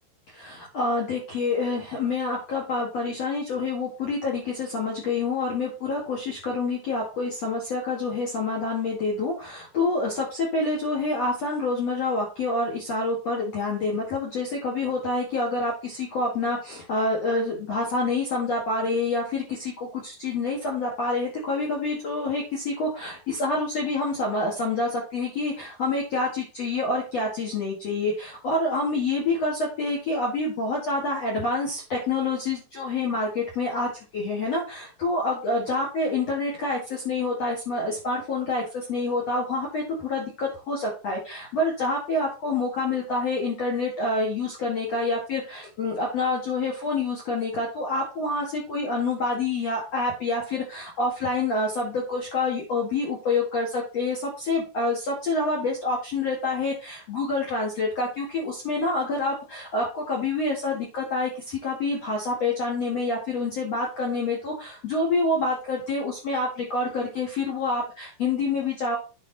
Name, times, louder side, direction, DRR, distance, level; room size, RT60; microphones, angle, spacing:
voice 1, 0.3-69.0, left 3 dB, 50° left, -3 dB, 2.0 m, -27 dB
9.3 x 4.9 x 4.2 m, 0.32 s
omnidirectional pair, 5.9 m